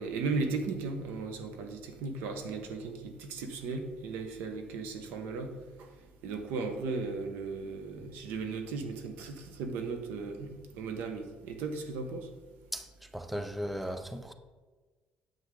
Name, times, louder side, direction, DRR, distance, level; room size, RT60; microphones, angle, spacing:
voice 1, 0.0-5.5 5.8-5.9 6.2-10.5 10.8-12.3, right 4 dB, 90° right, 1.2 m, -36 dB
voice 2, 13.1-14.3, equal, ahead, 0.4 m, -36 dB
9.2 x 7.2 x 3.9 m
cardioid pair, 180°, 3 cm